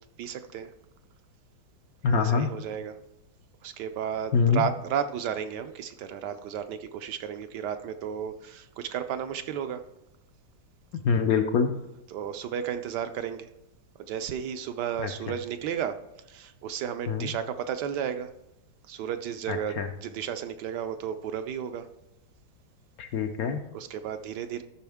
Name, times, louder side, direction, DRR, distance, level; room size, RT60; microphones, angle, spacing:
voice 1, 0.2-0.7 2.1-3.0 3.6-9.8 12.1-13.5 14.0-16.0 16.3-18.3 18.9-21.9 23.7-24.6, right 8 dB, 75° right, 9 dB, 1.1 m, -33 dB
voice 2, 2.0-2.5 4.3-4.6 11.0-11.7 15.0-15.1 17.1-17.3 19.5-19.9 23.0-23.6, left 5 dB, 65° left, 5 dB, 0.9 m, -24 dB
13.0 x 6.1 x 3.5 m, 0.91 s
omnidirectional pair, 2.0 m